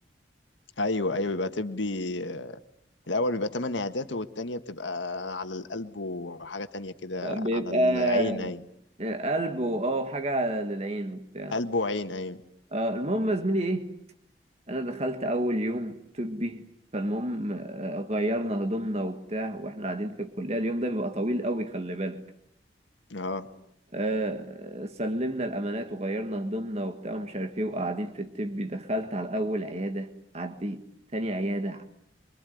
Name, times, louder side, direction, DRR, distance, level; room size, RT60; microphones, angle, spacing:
voice 1, 0.8-2.6 3.1-8.6 11.5-12.4 23.1-23.5, left 2 dB, 90° left, 1.6 m, -31 dB
voice 2, 7.2-8.5 9.0-11.5 12.7-13.9 14.7-16.7 16.9-22.2 23.9-30.1 30.3-30.8 31.1-31.8, right 1 dB, 35° right, 1.8 m, -29 dB
25.0 x 25.0 x 9.4 m
head